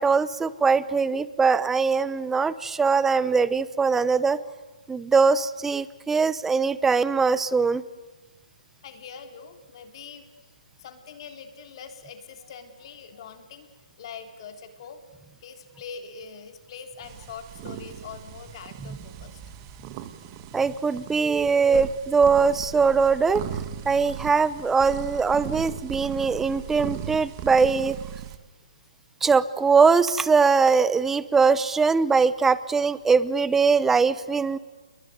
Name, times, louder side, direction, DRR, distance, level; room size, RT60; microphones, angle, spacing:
voice 1, 0.0-4.4 4.9-7.8 20.5-23.4 23.8-28.0 29.2-34.6, right 5 dB, 10° right, 17 dB, 0.9 m, -21 dB
voice 2, 8.8-10.5 10.8-13.7 14.0-15.0 15.4-19.4, left 6 dB, 45° left, 6 dB, 3.5 m, -43 dB
sound 1, 17.0-28.4, right 11 dB, 35° right, 2.1 m, -38 dB
28.0 x 22.0 x 9.4 m, 1.2 s
hypercardioid pair, 140°, 4 cm